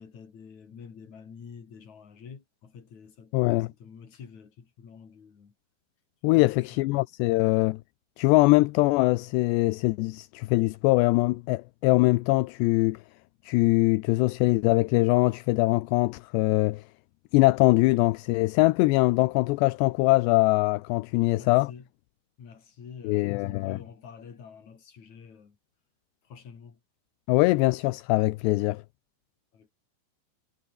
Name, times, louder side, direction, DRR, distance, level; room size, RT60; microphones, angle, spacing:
voice 1, 0.0-5.5 6.4-7.0 21.2-21.9 22.4-25.6 26.2-26.8 29.5-29.7, left 6 dB, 45° left, 4.5 m, -48 dB
voice 2, 3.3-3.7 6.2-7.8 8.2-13.0 13.4-16.8 17.3-21.7 23.0-23.8 27.3-28.8, left 22 dB, 80° left, 2.7 m, -22 dB
omnidirectional pair, 5.2 m